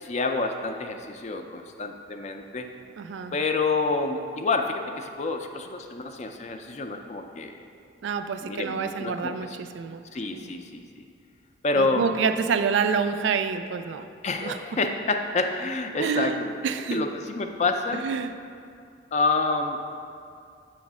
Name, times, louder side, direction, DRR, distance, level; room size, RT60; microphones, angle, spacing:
voice 1, 0.0-2.7 3.3-7.5 8.4-9.6 10.1-11.0 11.6-12.1 14.2-16.5 16.9-18.0 19.1-19.8, left 3 dB, 35° left, 5 dB, 0.4 m, -28 dB
voice 2, 3.0-3.3 8.0-9.5 9.7-10.0 10.3-10.5 11.8-14.1 14.4-14.6 16.0-17.0 17.9-18.3, right 6 dB, 65° right, 9 dB, 0.3 m, -27 dB
7.3 x 3.1 x 6.0 m, 2.4 s
head